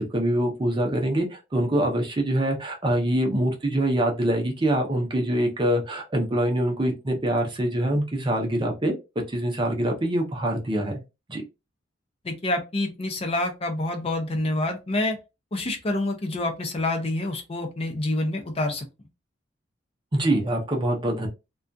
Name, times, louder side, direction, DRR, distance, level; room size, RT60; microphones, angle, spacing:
voice 1, 0.1-8.9 9.3-11.0 11.3-11.4 20.1-21.3, right 1 dB, 25° right, 0.6 m, -24 dB
voice 2, 12.2-15.2 15.5-18.9, left 2 dB, 30° left, 0.5 m, -27 dB
2.4 x 2.2 x 2.5 m
head